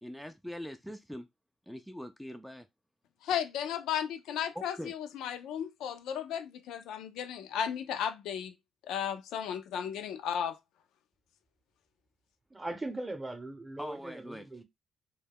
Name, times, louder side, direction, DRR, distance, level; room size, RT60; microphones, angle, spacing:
voice 1, 0.0-1.3 1.7-2.7 4.6-4.9 13.8-14.5, equal, ahead, 0.3 m, -42 dB
voice 2, 3.2-8.5 8.9-10.6, left 8 dB, 85° left, 0.4 m, -34 dB
voice 3, 12.5-14.6, right 2 dB, 20° right, 0.7 m, -39 dB
2.2 x 2.1 x 3.4 m
cardioid pair, 90°, 0 cm